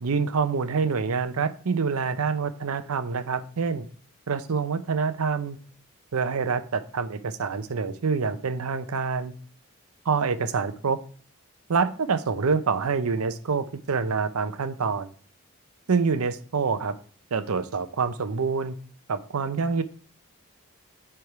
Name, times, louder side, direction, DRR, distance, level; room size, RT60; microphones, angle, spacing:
voice 1, 0.0-3.9 4.3-5.6 6.1-9.3 10.1-11.0 11.7-15.1 15.9-16.9 17.3-18.8 19.1-19.8, right 5 dB, 85° right, 12 dB, 0.6 m, -26 dB
7.9 x 3.5 x 4.6 m, 0.43 s
head